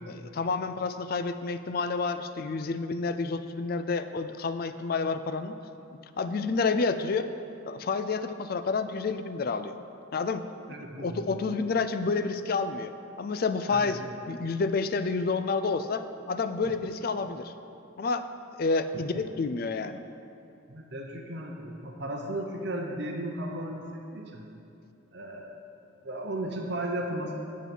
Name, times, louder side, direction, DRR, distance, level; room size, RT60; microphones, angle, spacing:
voice 1, 0.1-5.6 6.2-7.3 7.7-9.7 10.1-10.4 11.0-12.9 13.2-14.0 14.3-17.5 18.0-18.3 18.6-20.0, left 4 dB, 50° left, 10 dB, 0.4 m, -29 dB
voice 2, 10.7-11.3 13.7-13.9 16.6-16.7 18.9-19.0 20.7-24.4 25.1-25.5 26.0-27.4, right 1 dB, 55° right, 1 dB, 0.9 m, -35 dB
8.4 x 7.5 x 5.4 m, 2.7 s
head